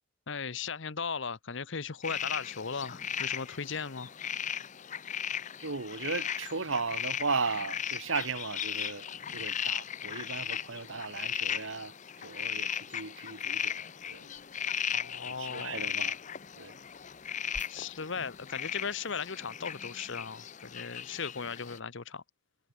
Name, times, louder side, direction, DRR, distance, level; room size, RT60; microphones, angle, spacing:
voice 1, 0.3-4.1 14.9-15.9 17.7-22.2, left 5 dB, 60° left, 0.9 m, -37 dB
sound 1, 2.0-21.8, left 8 dB, 35° left, 0.6 m, -37 dB
voice 2, 5.6-9.1 9.3-13.8 14.1-14.3 15.3-16.2 16.6-16.8, right 4 dB, 65° right, 1.7 m, -36 dB
sound 2, 14.0-19.3, equal, 5° left, 2.1 m, -56 dB
head